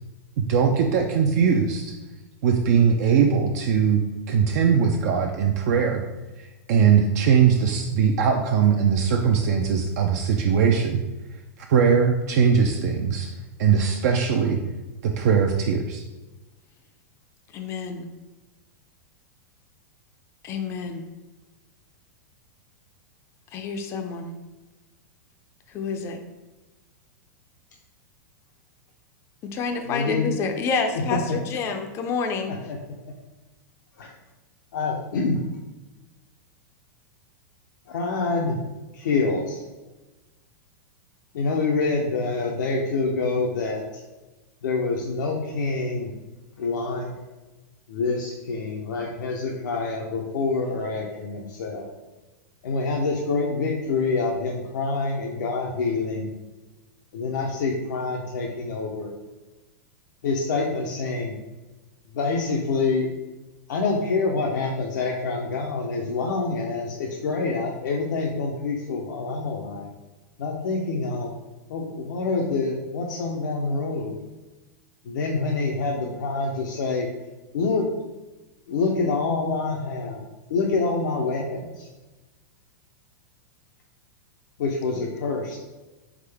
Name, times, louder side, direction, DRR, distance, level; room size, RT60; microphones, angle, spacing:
voice 1, 0.4-2.0 2.4-6.0 6.4-11.0 11.7-13.3 13.6-14.6 15.0-16.0, right 6 dB, 60° right, 2 dB, 0.4 m, -20 dB
voice 2, 17.5-18.1 20.4-21.0 23.5-24.3 25.7-26.2 29.5-32.5 85.0-85.1, left 5 dB, 25° left, 5 dB, 0.4 m, -28 dB
voice 3, 29.9-30.3 30.9-31.4 32.5-32.8 34.0-34.1 34.7-35.4 37.9-38.6 38.9-39.6 41.3-44.0 44.6-46.1 46.6-47.2 47.9-51.9 52.6-56.3 57.1-59.1 60.2-61.3 62.1-63.1 63.7-69.9 70.4-71.3 71.7-74.2 75.0-77.1 77.5-77.9 78.7-80.2 80.5-81.9 84.6-85.6, left 3 dB, 85° left, -1 dB, 0.6 m, -26 dB
3.7 x 3.6 x 3.4 m, 1.1 s
supercardioid pair, 140°, 10 cm